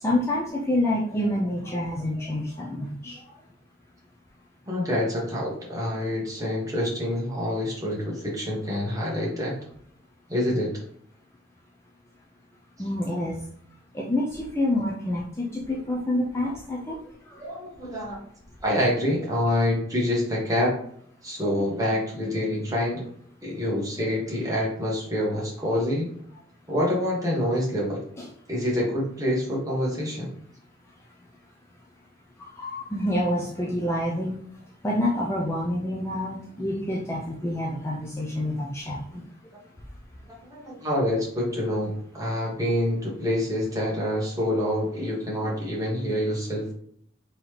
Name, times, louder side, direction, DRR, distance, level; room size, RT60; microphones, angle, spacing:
voice 1, 0.0-3.2 12.8-13.4 13.9-17.0 17.3-17.4 28.2-28.3 32.4-34.3 34.8-39.2, left 1 dB, 15° left, -4 dB, 0.4 m, -27 dB
voice 2, 4.6-9.5 10.3-10.8 17.4-18.2 18.6-20.8 21.2-23.0 23.4-26.1 26.7-28.0 28.5-30.3 40.3-46.7, left 1 dB, 15° right, -4 dB, 1.2 m, -26 dB
3.9 x 3.1 x 3.1 m, 0.65 s
head